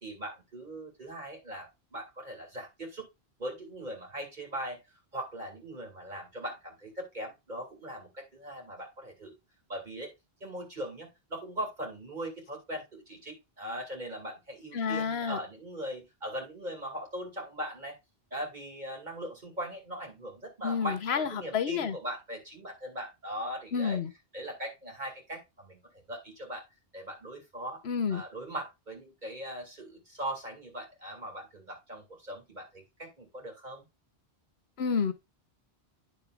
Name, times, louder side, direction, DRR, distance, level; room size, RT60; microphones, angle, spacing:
voice 1, 0.0-3.0 3.4-4.8 5.1-9.4 9.7-10.1 10.4-18.0 18.3-24.0 24.3-26.6 26.9-27.8 28.1-33.9, equal, 45° right, 2.5 m, -40 dB
voice 2, 14.7-15.4 20.6-22.0 23.7-24.1 27.8-28.2 34.8-35.1, left 6 dB, 75° left, 1.2 m, -29 dB
10.0 x 6.5 x 2.5 m
omnidirectional pair, 1.1 m